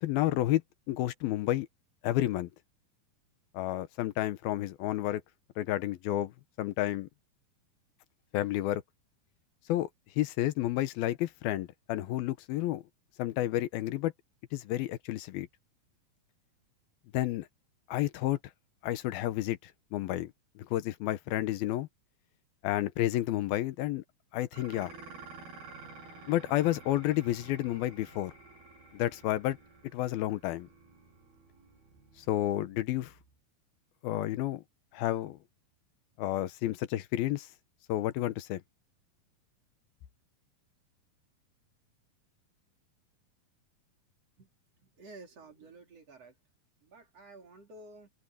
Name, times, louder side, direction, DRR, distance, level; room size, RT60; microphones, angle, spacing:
voice 1, 0.0-0.6 0.9-1.7 2.0-2.5 3.5-5.2 5.6-6.3 6.6-7.1 8.3-8.8 9.7-9.9 10.2-12.8 13.2-14.1 14.5-15.5 17.1-17.5 17.9-18.4 18.8-20.3 20.6-21.9 22.6-24.0 24.3-24.9 26.3-28.3 28.9-29.6 29.9-30.7 32.3-33.1 34.0-34.6 34.9-35.4 36.2-37.5 37.9-38.6, left 14 dB, 85° left, 2.8 m, -30 dB
Dishes pots and pans, 24.5-33.3, right 4 dB, 85° right, 8.9 m, -52 dB
voice 2, 44.8-46.3 46.8-48.1, right 2 dB, 45° right, 4.2 m, -52 dB
omnidirectional pair, 4.3 m